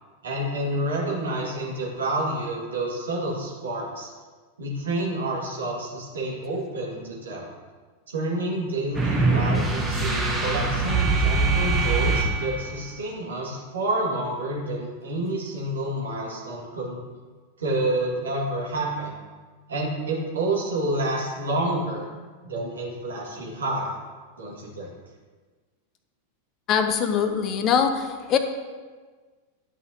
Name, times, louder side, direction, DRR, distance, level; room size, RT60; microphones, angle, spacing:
voice 1, 0.2-4.1 4.6-7.5 8.1-17.0 17.6-19.1 19.7-22.1 22.4-24.0 24.4-24.9, right 1 dB, 65° right, -3 dB, 1.9 m, -29 dB
sound 1, 8.9-12.8, right 3 dB, 10° right, 1.3 m, -23 dB
voice 2, 26.7-28.4, left 7 dB, 35° left, 8 dB, 0.7 m, -22 dB
11.0 x 5.6 x 2.8 m, 1.4 s
figure-of-eight pair, 90°, 0 cm